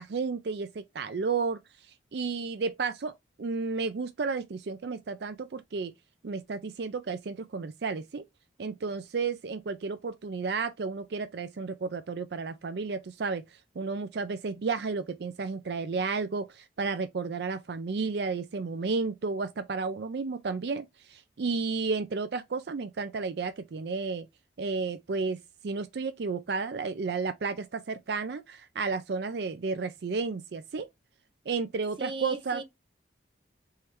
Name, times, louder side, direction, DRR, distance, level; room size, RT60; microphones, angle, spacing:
voice 1, 0.0-1.6 2.1-3.1 3.4-5.9 6.2-8.2 8.6-24.3 24.6-25.4 25.6-30.9 31.5-32.6, right 4 dB, 60° right, 0.4 m, -32 dB
voice 2, 32.0-32.6, right 3 dB, 25° right, 0.8 m, -37 dB
3.7 x 3.2 x 4.4 m
head